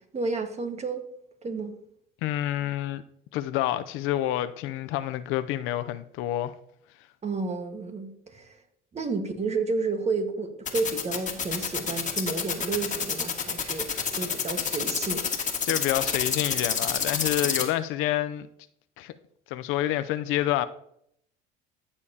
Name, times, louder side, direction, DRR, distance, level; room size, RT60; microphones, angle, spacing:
voice 1, 0.1-1.0 1.4-1.7 7.2-8.6 8.9-15.3, right 3 dB, 30° right, 1.6 m, -31 dB
voice 2, 2.2-3.0 3.3-6.5 15.6-18.5 19.0-19.1 19.5-20.7, left 13 dB, 75° left, 0.6 m, -28 dB
sound 1, 10.6-17.6, left 6 dB, 35° left, 1.8 m, -27 dB
14.0 x 7.0 x 2.8 m
supercardioid pair, 90°, 21 cm